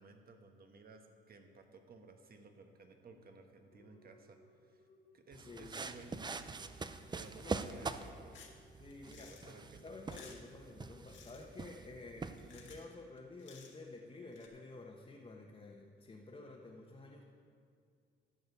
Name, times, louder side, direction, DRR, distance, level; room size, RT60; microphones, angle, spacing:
voice 1, 0.0-4.9 5.1-6.7 7.1-8.5 9.1-10.0, right 3 dB, 50° right, 5 dB, 1.3 m, -57 dB
sound 1, 3.7-14.4, equal, 45° left, 1.7 m, -68 dB
sound 2, 5.3-12.8, right 4 dB, 20° right, 0.5 m, -44 dB
voice 2, 5.5-5.8 7.4-7.6 8.8-9.5 9.8-17.2, left 3 dB, 30° left, -2 dB, 1.2 m, -51 dB
sound 3, 8.3-8.6 8.9-9.5 9.9-10.5 11.0-11.5 12.3-12.9 13.2-13.8 14.3-14.5, left 6 dB, 70° left, 1.7 m, -57 dB
12.0 x 5.3 x 8.3 m, 2.2 s
cardioid pair, 90°, 20 cm